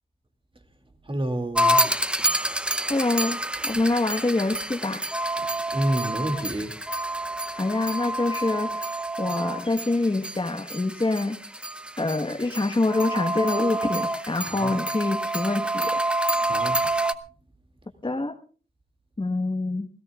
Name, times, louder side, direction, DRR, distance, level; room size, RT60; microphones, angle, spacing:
voice 1, 1.1-1.9 5.7-6.7 14.5-14.7 16.5-16.8, right 1 dB, 25° right, 5 dB, 2.4 m, -28 dB
sound 1, 1.5-17.1, right 1 dB, 5° right, 0.7 m, -28 dB
voice 2, 2.9-5.0 7.5-11.4 12.0-16.0 18.0-18.3 19.2-19.9, left 2 dB, 25° left, 4 dB, 1.3 m, -26 dB
27.5 x 17.0 x 2.4 m, 0.39 s
wide cardioid pair, 85°, 19 cm